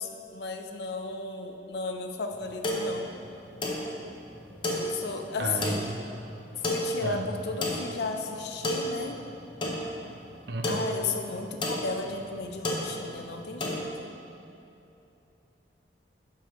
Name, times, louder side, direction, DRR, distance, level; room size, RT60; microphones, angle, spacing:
voice 1, 0.0-3.1 4.7-5.8 6.6-9.2 10.7-14.1, left 4 dB, 70° left, 5 dB, 0.6 m, -34 dB
sound 1, 2.3-13.8, left 1 dB, 25° left, 0.7 m, -33 dB
voice 2, 5.4-6.0 7.0-7.3 10.5-10.8, right 2 dB, 65° right, 4 dB, 0.6 m, -32 dB
11.5 x 4.7 x 3.0 m, 2.8 s
head